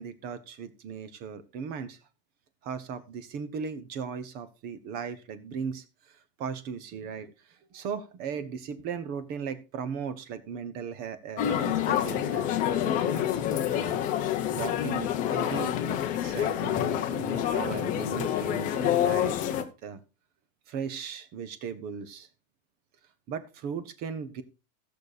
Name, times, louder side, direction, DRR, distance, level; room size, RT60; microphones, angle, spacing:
voice 1, 0.0-2.0 2.6-12.6 13.0-14.0 14.5-20.0 20.7-22.3 23.3-24.4, right 6 dB, 25° right, 13 dB, 0.8 m, -37 dB
sound 1, 11.4-19.6, left 10 dB, 20° left, 0.7 m, -27 dB
15.0 x 6.7 x 4.1 m, 0.29 s
supercardioid pair, 175°, 40 cm